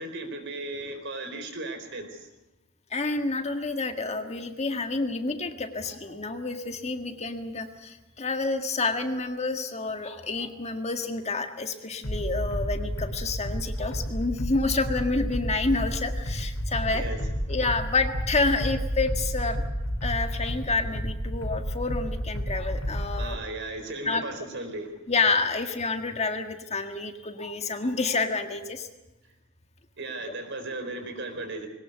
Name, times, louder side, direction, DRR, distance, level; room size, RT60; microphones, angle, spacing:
voice 1, 0.0-2.3 16.9-17.2 23.2-25.0 30.0-31.7, right 2 dB, 60° right, 7 dB, 4.4 m, -36 dB
voice 2, 2.9-17.0 17.5-19.6 20.0-23.4 24.0-24.2 25.1-28.9, left 3 dB, 30° left, 6 dB, 1.7 m, -29 dB
sound 1, 12.0-23.3, equal, 75° left, 3.7 m, -31 dB
21.5 x 19.0 x 8.2 m, 1.0 s
head